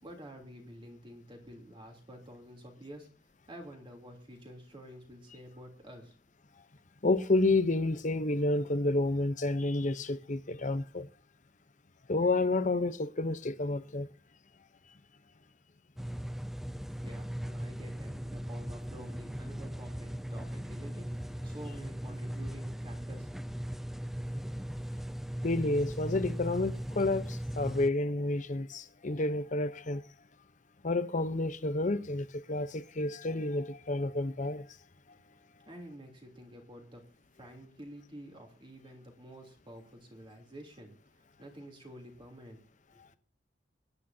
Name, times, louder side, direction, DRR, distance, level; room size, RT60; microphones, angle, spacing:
voice 1, 0.0-3.1 3.5-6.1 17.0-23.3 35.6-37.0 37.4-42.6 42.9-43.0, equal, 30° right, 3.2 m, -49 dB
voice 2, 7.0-11.1 12.1-14.1 25.4-30.0 30.8-34.7, left 2 dB, 45° left, 0.9 m, -30 dB
sound 1, 16.0-27.9, equal, ahead, 0.5 m, -38 dB
24.0 x 10.0 x 2.8 m
head